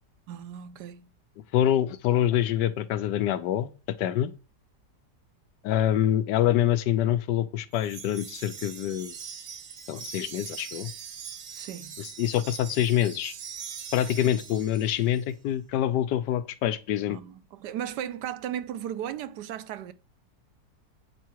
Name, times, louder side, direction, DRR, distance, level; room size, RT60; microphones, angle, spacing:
voice 1, 0.3-1.1 11.6-12.0 17.1-19.9, right 10 dB, 80° right, 1.2 m, -36 dB
voice 2, 1.5-3.7 4.0-4.3 5.6-9.1 9.9-10.9 12.0-13.3 13.9-17.2, left 11 dB, 85° left, 1.3 m, -25 dB
Wind chime, 7.7-15.2, right 7 dB, 55° right, 1.2 m, -42 dB
8.4 x 4.6 x 4.5 m
omnidirectional pair, 1.8 m